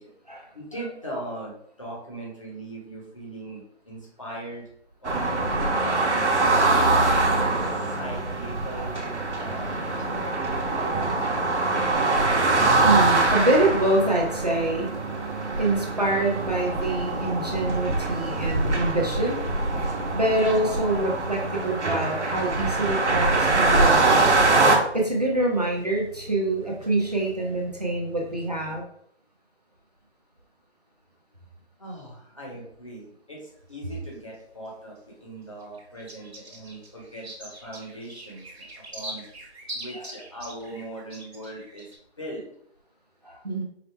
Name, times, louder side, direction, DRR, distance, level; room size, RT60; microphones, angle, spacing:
voice 1, 0.5-4.7 5.0-7.4 7.6-11.2 31.8-33.4 33.7-39.2 39.7-41.9 42.2-42.4, right 1 dB, 30° left, -3 dB, 1.0 m, -39 dB
sound 1, 5.0-24.8, right 2 dB, 85° right, 0.9 m, -23 dB
voice 2, 12.8-14.9 15.6-19.4 20.1-24.3 24.9-28.8 39.9-40.0 43.2-43.6, right 2 dB, 35° right, -2 dB, 0.6 m, -25 dB
sound 2, 18.3-28.8, equal, 65° left, 1.2 m, -44 dB
sound 3, 33.5-35.0 35.4-42.0, right 1 dB, 65° right, 1.2 m, -42 dB
4.8 x 2.0 x 3.2 m, 0.68 s
figure-of-eight pair, 175°, 34 cm